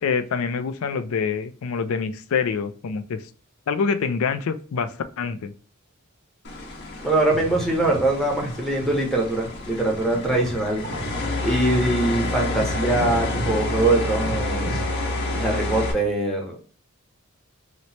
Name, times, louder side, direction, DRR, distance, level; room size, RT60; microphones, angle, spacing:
voice 1, 0.0-3.3 3.7-5.5, left 5 dB, 75° left, 10 dB, 0.4 m, -26 dB
sound 1, 6.4-15.9, left 2 dB, 50° left, 0.8 m, -29 dB
voice 2, 7.0-10.9 11.4-14.8 15.3-16.6, right 2 dB, ahead, -1 dB, 0.8 m, -23 dB
sound 2, 7.3-15.2, right 2 dB, 75° right, 0.6 m, -35 dB
2.9 x 2.1 x 4.1 m, 0.41 s
head